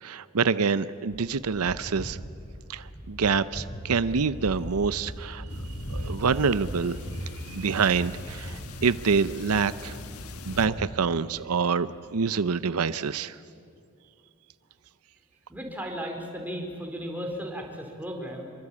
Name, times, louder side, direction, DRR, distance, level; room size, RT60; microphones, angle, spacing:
voice 1, 0.0-2.2 2.7-5.4 5.9-7.0 7.5-10.0 10.5-13.3, right 5 dB, 90° right, 15 dB, 0.7 m, -26 dB
sound 1, 1.1-10.9, equal, 35° left, 4.5 m, -38 dB
sound 2, 5.5-10.7, left 3 dB, 85° left, 1.5 m, -44 dB
voice 2, 15.5-18.5, equal, 10° right, 1 dB, 4.1 m, -35 dB
26.5 x 23.0 x 8.6 m, 2.5 s
head